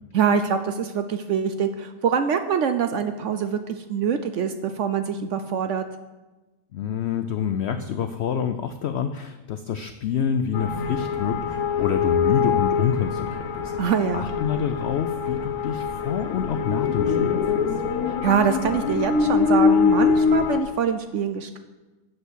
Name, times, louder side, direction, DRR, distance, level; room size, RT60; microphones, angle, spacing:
voice 1, 0.1-5.9 13.8-14.3 18.2-21.6, right 7 dB, 65° right, 9 dB, 0.8 m, -24 dB
voice 2, 6.7-17.7, left 7 dB, 80° left, 9 dB, 0.5 m, -27 dB
sound 1, 10.5-20.6, left 6 dB, 60° left, 1.0 m, -23 dB
8.1 x 7.9 x 6.3 m, 1.1 s
omnidirectional pair, 1.7 m